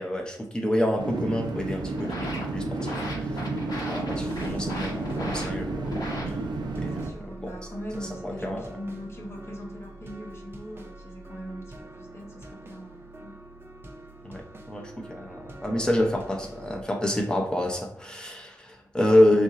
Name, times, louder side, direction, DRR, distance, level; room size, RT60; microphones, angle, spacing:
voice 1, 0.0-3.4 3.9-5.9 6.3-6.4 6.8-7.1 7.4-7.5 8.2-8.6 14.2-19.4, left 1 dB, 10° left, 1 dB, 0.8 m, -27 dB
sound 1, 1.0-7.1, right 3 dB, 85° right, 0.5 m, -32 dB
sound 2, 1.7-6.7, left 1 dB, 60° left, 1.0 m, -37 dB
sound 3, 4.0-16.8, right 1 dB, 30° right, 0.7 m, -44 dB
voice 2, 6.8-13.3, equal, 35° left, 0 dB, 0.9 m, -41 dB
3.7 x 2.6 x 4.1 m, 0.68 s
wide cardioid pair, 105°, 7 cm